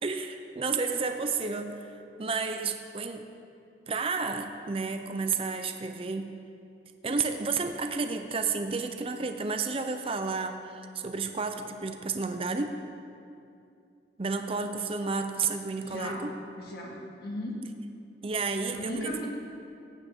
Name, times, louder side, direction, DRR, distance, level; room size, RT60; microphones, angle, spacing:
voice 1, 0.0-3.3 3.9-6.3 7.0-12.8 14.2-16.3 18.2-19.1, right 4 dB, 30° right, 7 dB, 0.5 m, -31 dB
voice 2, 15.8-16.3 16.6-17.6 18.7-19.3, left 1 dB, 60° left, -2 dB, 2.0 m, -37 dB
15.0 x 9.4 x 3.6 m, 2.5 s
head